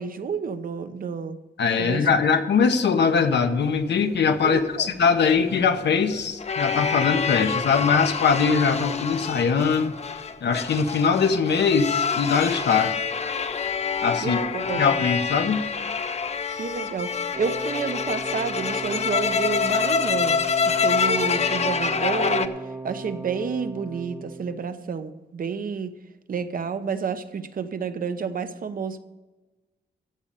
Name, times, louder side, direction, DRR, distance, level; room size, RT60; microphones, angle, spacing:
voice 1, 0.0-1.4 1.8-2.1 4.4-4.9 14.2-14.8 16.5-22.5 22.8-26.0 26.3-29.0, right 6 dB, 50° right, 11 dB, 0.8 m, -30 dB
voice 2, 1.6-9.9 10.4-12.9 14.0-14.4 14.7-15.6, left 5 dB, 75° left, 6 dB, 1.0 m, -21 dB
sound 1, 4.7-22.5, left 6 dB, 35° left, 0.7 m, -26 dB
Wind instrument woodwind instrument, 17.3-24.6, right 2 dB, 10° right, 0.6 m, -37 dB
15.0 x 5.4 x 8.7 m, 1.2 s
wide cardioid pair, 135°, 18 cm